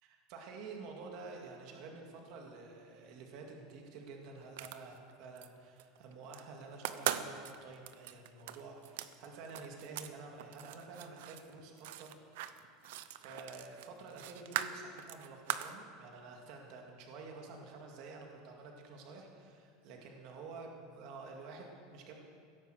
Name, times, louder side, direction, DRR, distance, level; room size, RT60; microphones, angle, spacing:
voice 1, 0.0-12.1 13.2-20.7 20.9-22.1, right 4 dB, 45° right, 1 dB, 2.1 m, -50 dB
sound 1, 4.4-5.5 5.8-6.4 6.7-10.1 10.4-15.8, right 12 dB, 65° right, 0.7 m, -41 dB
16.5 x 11.0 x 7.8 m, 2.2 s
supercardioid pair, 175°, 0 cm